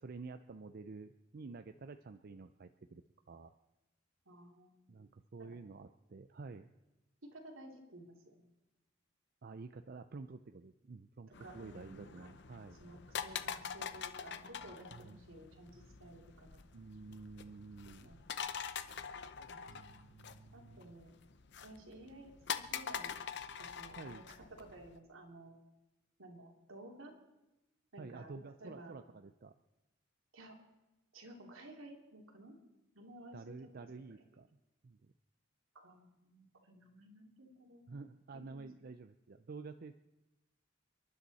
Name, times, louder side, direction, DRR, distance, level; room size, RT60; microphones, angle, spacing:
voice 1, 0.0-3.5 4.9-6.7 9.4-12.8 14.9-15.2 16.7-18.2 19.7-20.9 24.0-24.2 28.0-29.5 33.3-34.5 34.8-35.1 37.9-40.0, right 4 dB, 50° right, 9 dB, 0.5 m, -50 dB
voice 2, 4.3-4.9 5.4-5.5 7.2-8.5 11.3-12.3 12.8-16.6 17.8-18.3 19.5-19.6 20.5-21.1 21.6-22.3 22.6-23.2 23.6-25.5 26.2-27.1 27.9-28.3 28.6-29.0 30.3-30.5 31.1-32.6 32.9-33.9 35.7-37.8 38.3-38.6, right 1 dB, 80° right, 1 dB, 2.8 m, -54 dB
sound 1, 11.3-25.0, left 7 dB, 55° left, 0.7 m, -45 dB
29.0 x 11.0 x 4.2 m, 1.0 s
head